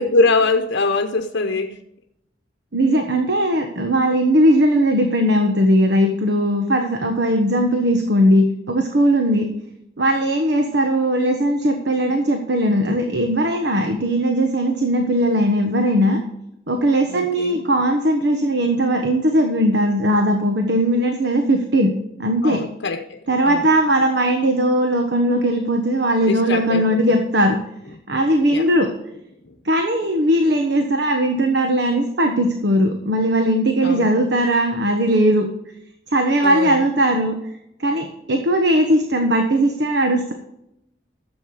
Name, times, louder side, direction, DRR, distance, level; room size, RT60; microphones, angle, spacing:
voice 1, 0.0-1.8 17.1-17.6 22.4-23.6 26.2-27.2 28.5-28.7 29.4-29.5 33.8-34.1 36.4-36.8, left 3 dB, 90° left, 5 dB, 0.9 m, -23 dB
voice 2, 2.7-9.5 10.0-16.2 16.7-21.9 22.2-22.6 23.3-27.6 28.1-28.9 29.6-35.5 36.1-37.4 37.8-40.3, right 1 dB, 70° right, 4 dB, 1.3 m, -18 dB
13.5 x 7.8 x 4.9 m, 0.81 s
head